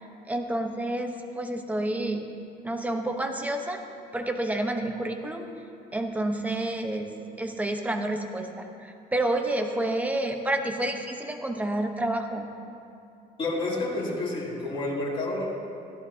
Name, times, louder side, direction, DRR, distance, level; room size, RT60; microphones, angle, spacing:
voice 1, 0.3-2.3 2.6-3.9 4.1-5.4 5.9-12.5, right 1 dB, 10° right, 4 dB, 1.0 m, -29 dB
voice 2, 13.4-15.5, left 2 dB, 30° left, -6 dB, 3.1 m, -29 dB
16.5 x 11.5 x 2.9 m, 2.5 s
cardioid pair, 110°, 17 cm